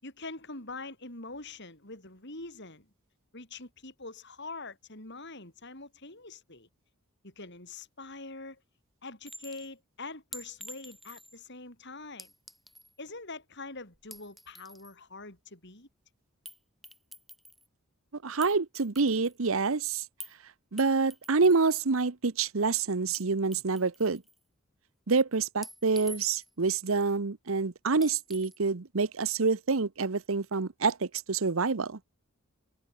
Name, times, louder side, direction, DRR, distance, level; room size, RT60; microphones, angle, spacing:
voice 1, 0.0-2.9 3.3-6.7 7.2-8.6 9.0-12.3 13.0-15.9, left 3 dB, 55° left, 7.4 m, -44 dB
Chink clink, 9.2-9.7 10.3-11.4 12.2-12.9 13.9-14.9 16.4-16.6 16.8-17.7 18.4-19.4 20.2-20.4 20.8-21.6 23.1-23.2 23.5-24.4 25.6-26.6 28.0-28.6, equal, ahead, 5.4 m, -47 dB
voice 2, 18.2-20.0 20.7-24.2 25.1-32.0, right 4 dB, 70° right, 0.9 m, -27 dB
head